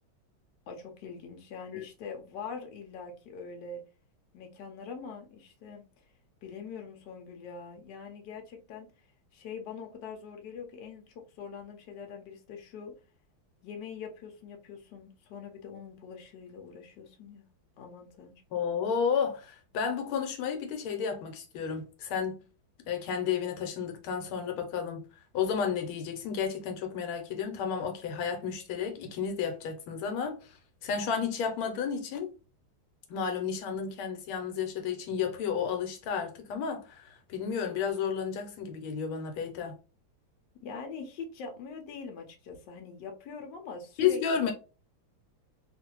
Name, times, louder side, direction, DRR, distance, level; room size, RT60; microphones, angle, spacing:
voice 1, 0.7-3.8 4.3-5.9 6.4-8.9 9.3-12.9 13.6-17.5 17.8-18.4 40.6-44.5, left 5 dB, 65° left, 1.2 m, -43 dB
voice 2, 18.5-22.4 22.9-25.0 25.3-32.3 33.1-39.8 44.0-44.5, left 7 dB, 90° left, 1.6 m, -32 dB
3.1 x 2.5 x 2.9 m
omnidirectional pair, 2.2 m